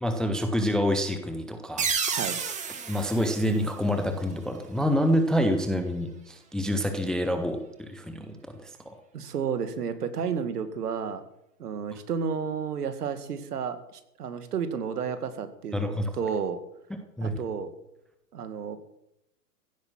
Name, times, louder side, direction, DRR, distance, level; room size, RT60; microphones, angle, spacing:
voice 1, 0.0-1.9 2.9-9.0 15.7-16.1 17.2-17.3, equal, ahead, 6 dB, 0.5 m, -27 dB
sound 1, 1.8-4.3, right 6 dB, 15° right, 1.6 m, -31 dB
voice 2, 9.1-11.2 11.6-16.6 17.2-17.7 18.3-18.8, right 6 dB, 70° right, 10 dB, 2.1 m, -32 dB
15.5 x 8.5 x 7.6 m, 0.83 s
hypercardioid pair, 125°, 48 cm